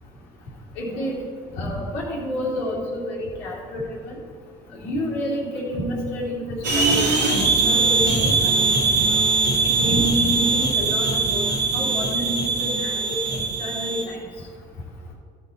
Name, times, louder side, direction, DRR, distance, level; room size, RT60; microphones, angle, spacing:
voice 1, 0.8-1.2 1.6-3.8 4.8-6.4 6.7-7.4 7.6-8.3 8.8-9.0 9.8-11.4 11.7-13.2 13.6-14.2, equal, 70° left, -8 dB, 2.8 m, -28 dB
sound 1, 6.6-14.0, right 3 dB, 90° right, 2.5 m, -21 dB
14.5 x 7.1 x 4.3 m, 2.1 s
hypercardioid pair, 55°, 21 cm